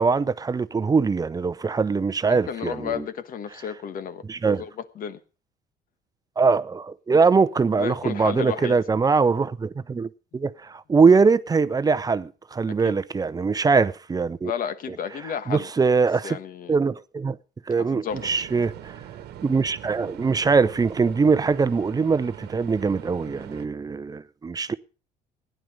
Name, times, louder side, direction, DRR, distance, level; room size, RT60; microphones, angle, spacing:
voice 1, 0.0-3.0 4.3-4.6 6.4-14.5 14.9-15.0 15.5-16.4 16.7-17.4 17.7-19.0 19.4-24.7, right 4 dB, 20° right, 0.6 m, -22 dB
voice 2, 2.3-5.2 7.8-8.7 12.8-13.0 14.4-15.7 16.2-16.8 17.8-18.4, left 8 dB, 55° left, 1.3 m, -32 dB
sound 1, 18.1-23.7, right 11 dB, 75° right, 1.2 m, -42 dB
16.0 x 10.5 x 5.3 m
cardioid pair, 110°, 17 cm